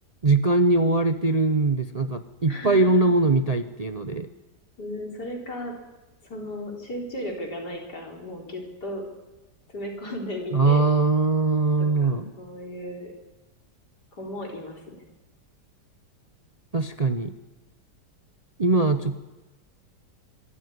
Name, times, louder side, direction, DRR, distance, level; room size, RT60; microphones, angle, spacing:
voice 1, 0.2-4.3 10.5-12.3 16.7-17.3 18.6-19.2, right 3 dB, 35° right, 9 dB, 0.6 m, -21 dB
voice 2, 2.5-2.9 4.8-5.8 6.2-9.1 9.7-10.8 11.8-13.1 14.1-15.0, left 1 dB, 75° left, 1 dB, 4.5 m, -35 dB
24.0 x 13.0 x 9.6 m, 1.1 s
omnidirectional pair, 1.8 m